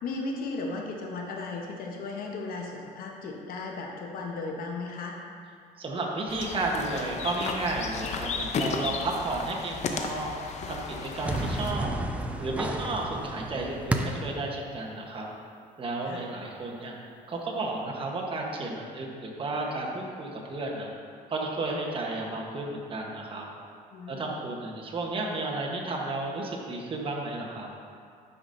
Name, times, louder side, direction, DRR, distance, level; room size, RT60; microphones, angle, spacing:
voice 1, 0.0-5.2 16.0-16.2 23.9-24.3, left 3 dB, 60° left, 0 dB, 1.0 m, -35 dB
voice 2, 5.8-10.3 10.7-11.9 12.4-15.3 15.8-17.0 17.3-20.9 21.3-23.4 24.1-27.7, right 2 dB, 30° right, -1 dB, 1.0 m, -32 dB
sound 1, 6.3-11.7, left 5 dB, 45° left, 0.5 m, -34 dB
sound 2, 11.2-14.4, right 1 dB, 10° right, 0.4 m, -31 dB
9.7 x 4.9 x 2.6 m, 2.3 s
cardioid pair, 110°, 17 cm